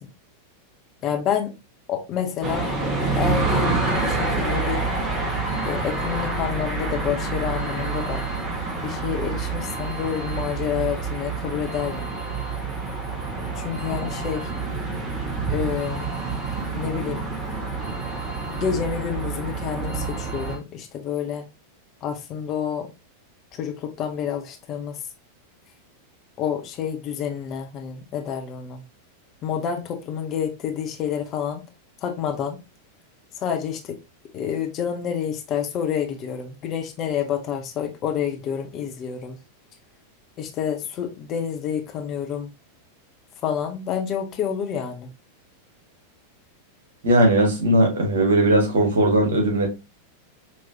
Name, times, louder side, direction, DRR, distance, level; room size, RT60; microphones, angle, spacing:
voice 1, 1.0-1.5 1.9-2.7 3.1-4.8 5.6-8.2 8.8-12.1 13.6-14.5 15.5-16.1 16.7-17.2 18.5-21.4 22.0-22.9 23.5-25.0 26.4-28.8 29.4-31.6 32.0-32.6 33.4-34.0 34.3-39.4 40.4-42.5 43.4-45.1, left 8 dB, 35° left, 0.9 m, -28 dB
sound 1, 2.4-20.6, right 3 dB, 20° right, 1.7 m, -27 dB
voice 2, 47.0-49.7, right 1 dB, 60° right, 2.0 m, -18 dB
5.4 x 3.1 x 2.9 m
figure-of-eight pair, 90°, 0 cm